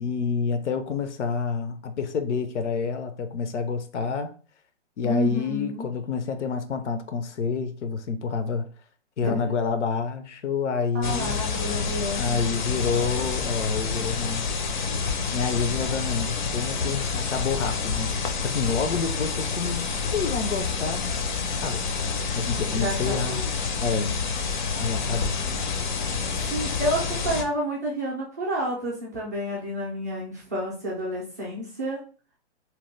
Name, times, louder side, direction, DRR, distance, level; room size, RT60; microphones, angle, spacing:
voice 1, 0.0-4.3 5.0-8.7 9.2-11.3 12.1-14.5 15.3-18.2 18.4-21.2 21.6-21.8 22.3-23.4 23.8-24.2 24.7-25.4, left 5 dB, 85° left, 0.6 m, -28 dB
voice 2, 5.0-5.9 9.2-9.4 10.9-12.4 22.7-23.5 26.3-32.0, equal, 15° right, 0.4 m, -30 dB
sound 1, 11.0-27.4, left 5 dB, 45° left, 0.5 m, -28 dB
2.9 x 2.1 x 3.2 m
hypercardioid pair, 160°, 35 cm